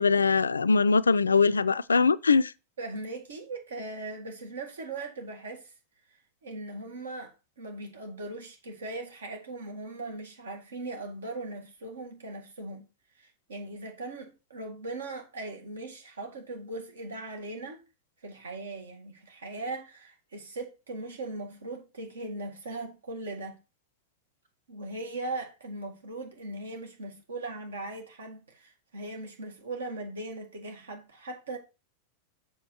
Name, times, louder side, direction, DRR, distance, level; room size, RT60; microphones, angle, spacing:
voice 1, 0.0-2.5, left 4 dB, 75° left, 0.4 m, -22 dB
voice 2, 2.8-5.7 6.4-12.8 13.2-17.8 18.2-23.6 24.7-31.6, right 2 dB, 70° right, 1.9 m, -39 dB
7.1 x 6.4 x 4.4 m
figure-of-eight pair, 90°, 0 cm